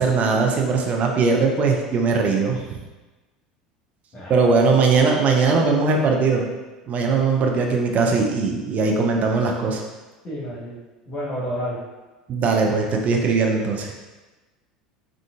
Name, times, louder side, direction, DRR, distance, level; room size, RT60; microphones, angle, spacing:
voice 1, 0.0-2.8 4.3-6.5 6.9-9.8 12.3-13.9, right 4 dB, 40° right, 1 dB, 0.5 m, -20 dB
voice 2, 4.1-4.5 5.2-6.1 10.2-10.8 11.1-11.8, equal, 35° left, -7 dB, 1.2 m, -31 dB
3.7 x 2.5 x 2.3 m, 1.2 s
hypercardioid pair, 75°, 4 cm